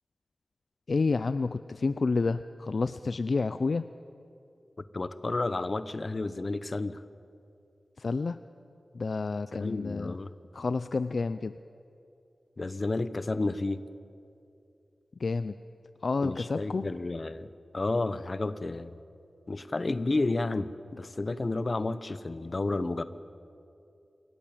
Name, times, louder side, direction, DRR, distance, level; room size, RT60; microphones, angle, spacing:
voice 1, 0.9-3.9 8.0-8.4 8.9-10.2 10.5-11.6 15.2-15.5 16.0-16.9, left 4 dB, 60° left, 12 dB, 0.5 m, -29 dB
voice 2, 4.9-7.0 9.5-10.3 12.6-13.8 16.2-19.0 19.5-23.0, left 2 dB, 40° left, 13 dB, 1.0 m, -31 dB
27.5 x 18.0 x 8.8 m, 2.6 s
wide cardioid pair, 110°, 0 cm